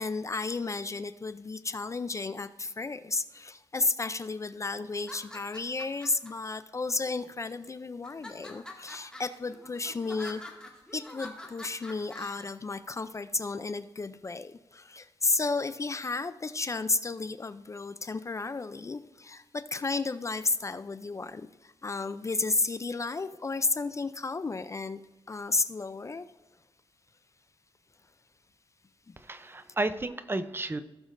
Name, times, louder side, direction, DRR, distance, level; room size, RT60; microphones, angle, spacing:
voice 1, 0.0-10.4 10.9-25.0 25.3-26.3 29.1-29.2, left 3 dB, 30° left, 13 dB, 0.4 m, -33 dB
sound 1, 4.9-6.3 7.0-7.6 8.0-12.4, left 1 dB, 10° left, 2.0 m, -45 dB
voice 2, 29.2-30.8, right 2 dB, 20° right, 11 dB, 0.6 m, -32 dB
16.5 x 7.0 x 2.6 m, 1.1 s
wide cardioid pair, 105°, 10 cm